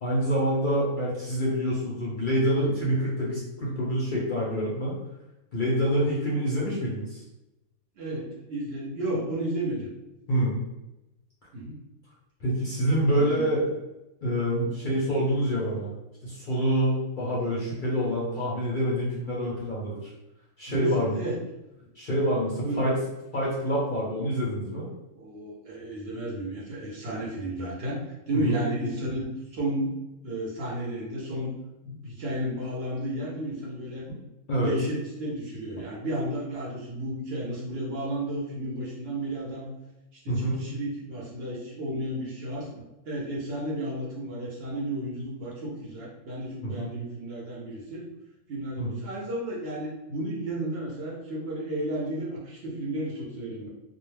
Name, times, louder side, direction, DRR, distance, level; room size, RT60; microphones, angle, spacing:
voice 1, 0.0-5.0 5.5-7.2 10.3-10.6 12.4-13.6 14.2-15.9 16.2-20.1 20.6-21.1 21.9-23.0 23.3-24.9 28.3-28.6 34.1-34.2 34.5-34.7 35.8-35.9 40.3-40.6 46.6-46.9 48.8-48.9, equal, 50° left, -6 dB, 0.6 m, -26 dB
voice 2, 8.0-9.9 11.5-11.8 12.9-13.4 20.7-21.4 22.6-22.9 25.2-28.0 28.3-29.9 30.2-31.5 31.9-34.1 34.6-39.7 40.1-48.0 48.5-53.7, right 1 dB, 55° right, -4 dB, 0.8 m, -33 dB
2.3 x 2.1 x 3.2 m, 0.97 s
omnidirectional pair, 1.4 m